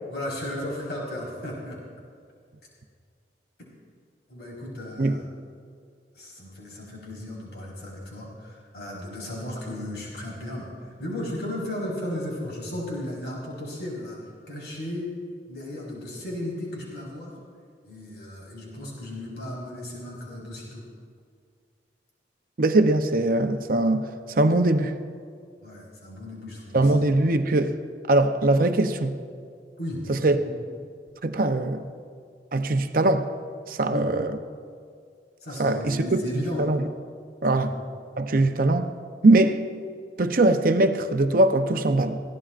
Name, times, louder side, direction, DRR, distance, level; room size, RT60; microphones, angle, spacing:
voice 1, 0.1-1.8 4.3-5.2 6.1-14.2 14.5-15.1 15.5-17.4 17.8-20.9 25.6-26.9 29.8-30.5 33.9-34.1 35.4-36.7 37.5-37.7 38.3-38.4, left 1 dB, 75° left, -4 dB, 4.4 m, -35 dB
voice 2, 22.6-25.0 26.7-27.8 28.1-29.2 30.1-30.4 31.2-31.9 32.5-33.3 33.7-34.3 35.6-36.8 37.4-37.7 38.2-38.9 39.2-39.6 40.2-42.2, right 2 dB, 55° right, 7 dB, 0.7 m, -21 dB
21.5 x 16.5 x 2.5 m, 2.2 s
head